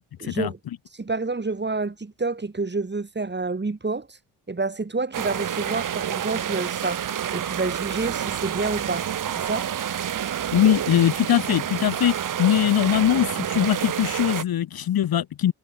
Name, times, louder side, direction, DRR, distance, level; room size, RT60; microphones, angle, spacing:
voice 1, 0.2-0.6 0.9-4.1 4.5-7.0 7.3-9.1 9.3-9.7, right 3 dB, 25° right, 5.0 m, -28 dB
sound 1, 5.1-14.4, right 9 dB, 45° right, 1.1 m, -28 dB
voice 2, 10.5-15.5, left 11 dB, 55° left, 1.1 m, -21 dB
supercardioid pair, 70°, 44 cm